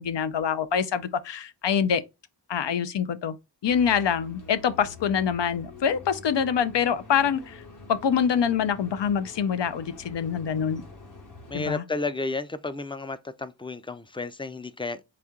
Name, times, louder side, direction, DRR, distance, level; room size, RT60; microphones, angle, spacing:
voice 1, 0.0-2.0 2.5-3.4 3.6-7.6 7.9-10.8 11.5-11.8, left 7 dB, 75° left, 0.6 m, -25 dB
sound 1, 3.6-11.7, left 3 dB, 45° left, 1.1 m, -46 dB
voice 2, 11.5-15.0, left 3 dB, 10° left, 0.4 m, -32 dB
4.1 x 2.8 x 3.6 m
wide cardioid pair, 60°, 43 cm